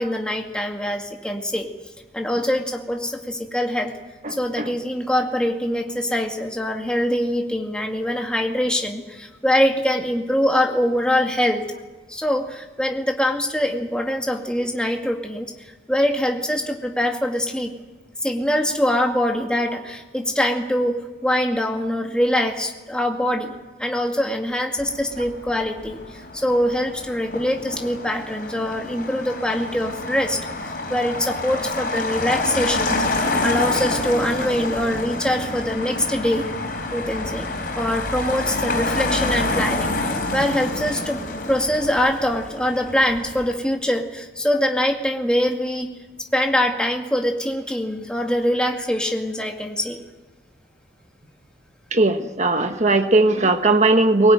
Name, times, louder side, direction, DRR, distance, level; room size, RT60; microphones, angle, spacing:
voice 1, 0.0-1.7 2.1-3.9 4.3-11.7 12.1-17.7 18.2-23.5 23.8-33.0 33.4-36.5 36.9-37.5 37.8-41.2 41.5-45.9 46.2-50.0, equal, 5° left, 2 dB, 2.1 m, -23 dB
voice 2, 4.2-4.7 51.9-54.3, right 2 dB, 40° right, 7 dB, 1.3 m, -18 dB
Motor vehicle (road), 24.8-43.5, left 2 dB, 50° left, 4.7 m, -27 dB
21.5 x 18.5 x 9.1 m, 1.3 s
head